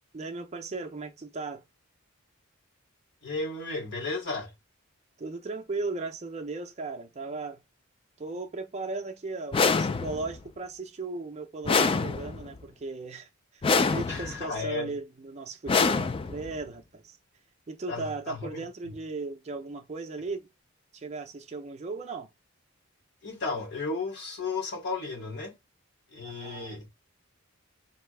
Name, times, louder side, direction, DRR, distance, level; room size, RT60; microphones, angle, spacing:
voice 1, 0.1-1.6 5.2-7.6 8.2-17.2 17.7-20.5 20.9-22.3 26.2-26.8, right 3 dB, 30° right, 0.5 m, -37 dB
voice 2, 3.2-4.5 14.1-15.0 17.9-18.9 23.2-25.5 26.1-26.9, left 3 dB, 55° left, 2.5 m, -34 dB
sound 1, 9.5-10.4 11.7-12.6 13.6-14.4 15.7-16.6, left 4 dB, 25° left, 0.3 m, -26 dB
4.1 x 2.7 x 3.3 m
head